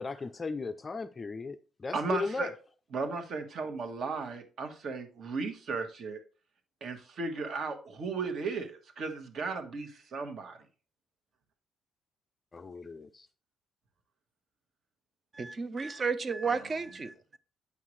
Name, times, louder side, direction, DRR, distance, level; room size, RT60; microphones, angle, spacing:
voice 1, 0.0-2.5 12.5-13.3, left 4 dB, 20° left, 0.4 m, -36 dB
voice 2, 1.9-2.5 2.9-6.2 6.8-10.6, right 4 dB, 45° right, 1.3 m, -35 dB
voice 3, 15.3-17.4, right 5 dB, 25° right, 0.6 m, -33 dB
8.5 x 5.7 x 3.1 m
cardioid pair, 155°, 0 cm